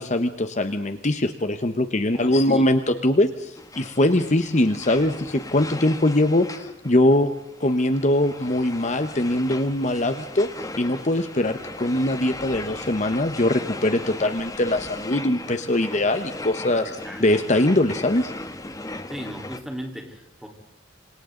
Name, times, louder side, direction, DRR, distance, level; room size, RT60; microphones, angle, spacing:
voice 1, 0.0-7.3 7.6-10.5 10.8-18.3, left 1 dB, 40° left, 8 dB, 1.1 m, -22 dB
voice 2, 2.1-2.7 16.9-17.2 19.1-20.5, equal, 5° right, 1 dB, 3.9 m, -37 dB
sound 1, 3.5-19.6, left 2 dB, 20° left, 1.3 m, -37 dB
27.5 x 27.0 x 3.9 m, 0.78 s
head